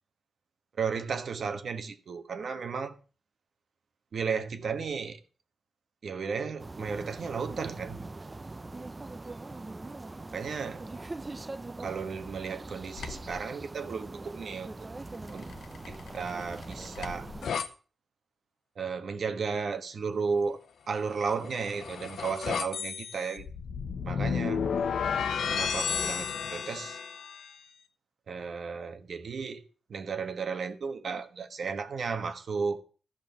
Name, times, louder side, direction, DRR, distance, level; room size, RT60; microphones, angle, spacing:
voice 1, 0.8-3.0 4.1-5.2 6.0-8.0 10.3-10.8 11.8-14.9 15.3-15.5 15.9-17.3 18.8-20.6 20.9-23.5 24.0-24.6 25.3-27.0 28.3-32.8, right 5 dB, 70° right, 1.3 m, -34 dB
sound 1, 6.6-17.5, right 2 dB, 25° right, 0.6 m, -42 dB
sound 2, 13.0-13.4 15.3-17.7 21.2-27.6, left 6 dB, 90° left, 0.9 m, -33 dB
13.0 x 5.6 x 6.8 m
cardioid pair, 90°, 0 cm